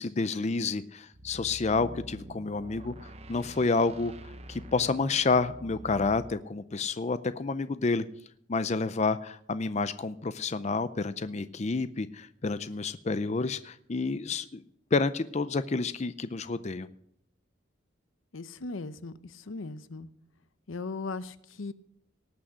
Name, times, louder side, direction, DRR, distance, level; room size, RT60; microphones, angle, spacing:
voice 1, 0.0-2.9 3.3-4.1 4.5-8.0 8.5-14.6 14.9-16.9, left 4 dB, 35° left, 13 dB, 0.5 m, -29 dB
sound 1, 1.1-6.4, right 1 dB, 30° right, 0.9 m, -46 dB
voice 2, 18.3-20.1 20.7-21.7, left 3 dB, 85° left, 14 dB, 0.7 m, -38 dB
18.5 x 6.2 x 6.3 m, 0.71 s
head